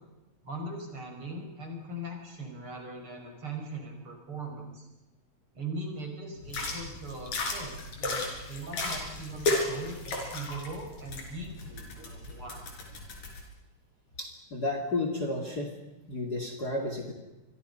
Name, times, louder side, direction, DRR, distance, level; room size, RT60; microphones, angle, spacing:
voice 1, 0.4-4.9 5.5-12.7, right 2 dB, 40° right, 2 dB, 6.2 m, -40 dB
sound 1, 6.4-13.4, left 2 dB, 60° left, 5.8 m, -34 dB
voice 2, 14.2-15.7 16.1-17.1, left 2 dB, 30° left, 4 dB, 2.7 m, -32 dB
28.5 x 23.0 x 5.6 m, 1.0 s
omnidirectional pair, 3.6 m